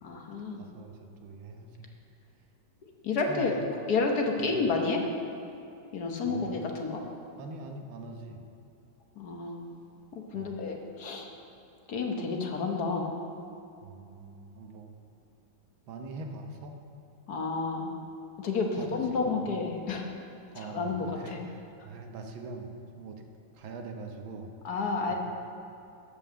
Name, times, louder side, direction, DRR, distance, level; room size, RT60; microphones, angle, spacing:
voice 1, 0.0-0.7 3.0-3.5 3.9-5.0 5.9-7.0 9.2-9.6 10.1-11.3 11.9-13.1 17.3-17.9 18.4-20.1 20.6-21.4 24.6-25.1, left 4 dB, 60° left, 2 dB, 1.4 m, -30 dB
voice 2, 0.6-1.9 3.3-3.6 4.4-4.6 6.2-6.5 7.4-8.4 10.3-10.6 13.8-14.9 15.9-16.8 18.8-19.5 20.5-23.2 23.5-24.5 25.1-25.2, right 3 dB, 85° right, 4 dB, 1.8 m, -43 dB
13.5 x 5.6 x 6.9 m, 2.6 s
omnidirectional pair, 2.1 m